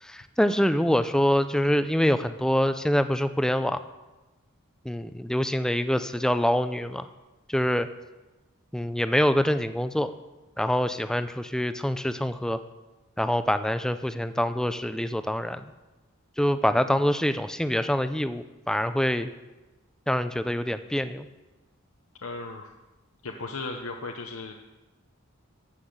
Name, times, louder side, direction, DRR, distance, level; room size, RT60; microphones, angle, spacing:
voice 1, 0.0-3.8 4.8-7.1 7.5-7.9 8.7-10.1 10.6-12.6 13.2-15.7 16.4-19.3 20.1-21.3, equal, 5° left, 11 dB, 0.4 m, -25 dB
voice 2, 22.2-22.8 23.2-24.8, left 3 dB, 90° left, 3 dB, 0.9 m, -36 dB
13.5 x 5.7 x 7.9 m, 1.1 s
head